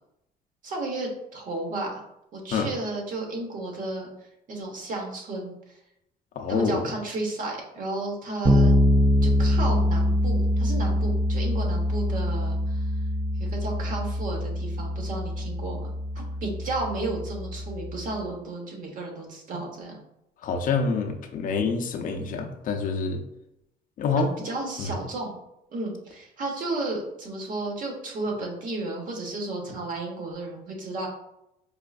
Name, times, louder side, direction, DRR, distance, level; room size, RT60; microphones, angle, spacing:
voice 1, 0.6-2.0 2.3-4.1 4.5-5.5 6.5-8.7 9.2-12.9 13.4-15.9 16.1-20.0 24.4-25.3 25.7-31.1, right 2 dB, 50° right, 0 dB, 1.1 m, -33 dB
voice 2, 6.4-6.9 20.4-23.2 24.0-24.3 24.8-25.0, left 4 dB, 55° left, 4 dB, 0.5 m, -26 dB
Bass guitar, 8.4-18.1, left 1 dB, 25° right, 0.5 m, -24 dB
4.7 x 2.5 x 2.4 m, 0.83 s
cardioid pair, 110°, 17 cm